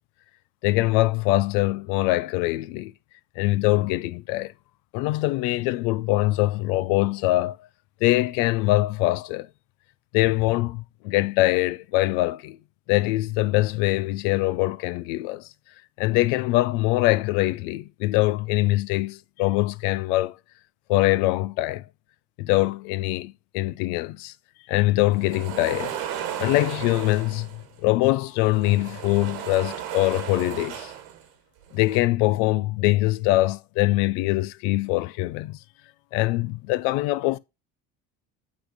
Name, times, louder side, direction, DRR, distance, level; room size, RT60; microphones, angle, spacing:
voice 1, 0.6-2.9 3.4-4.5 4.9-7.6 8.0-9.5 10.1-12.6 12.9-15.5 16.0-20.4 20.9-21.8 22.4-24.3 24.7-25.9 26.4-30.9 31.7-35.6 36.1-37.4, left 18 dB, 75° left, 0.7 m, -23 dB
sound 1, 25.1-27.7 28.4-31.2 31.6-32.0, right 10 dB, 80° right, 1.6 m, -35 dB
8.6 x 3.1 x 5.0 m
supercardioid pair, 85°, 39 cm